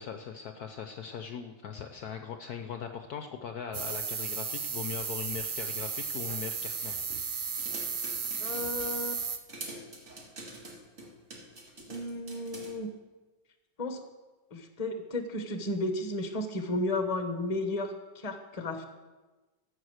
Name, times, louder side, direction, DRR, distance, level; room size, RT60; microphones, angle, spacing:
voice 1, 0.0-7.0, left 7 dB, 65° left, 7 dB, 1.1 m, -40 dB
sound 1, 3.7-9.4, right 5 dB, 55° right, 0.5 m, -34 dB
sound 2, 7.6-9.0 9.5-12.7, right 2 dB, 40° right, 2.2 m, -45 dB
voice 2, 8.4-9.2 11.9-12.9 13.8-14.0 14.5-18.9, left 2 dB, 25° left, 7 dB, 1.0 m, -33 dB
13.0 x 7.9 x 6.4 m, 1.2 s
omnidirectional pair, 2.1 m